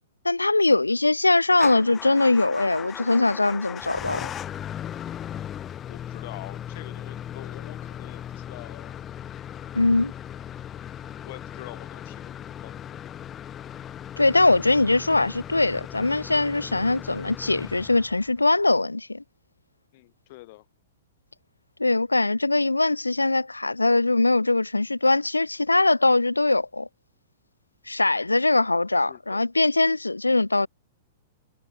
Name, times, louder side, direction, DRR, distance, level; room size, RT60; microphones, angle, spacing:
voice 1, 0.2-4.3 9.7-10.1 14.2-19.2 21.8-26.9 27.9-30.7, left 2 dB, 85° left, 0.3 m, -21 dB
Motor vehicle (road) / Engine starting / Idling, 1.5-18.5, left 10 dB, 25° left, 0.6 m, -38 dB
voice 2, 5.9-9.1 11.2-13.0 19.9-20.7 29.1-29.4, left 21 dB, 45° left, 1.5 m, -45 dB
figure-of-eight pair, 105°, 0 cm